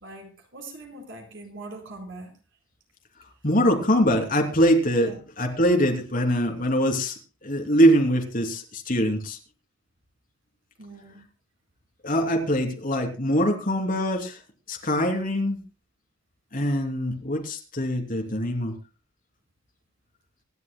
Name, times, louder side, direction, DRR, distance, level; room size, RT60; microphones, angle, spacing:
voice 1, 0.0-2.3 4.4-4.5 5.0-5.2 10.8-11.2, right 2 dB, 65° right, 3 dB, 4.4 m, -42 dB
voice 2, 3.4-9.4 12.0-14.4 14.7-15.6 16.5-18.7, equal, 45° left, 3 dB, 3.0 m, -23 dB
25.5 x 11.5 x 2.2 m, 0.29 s
head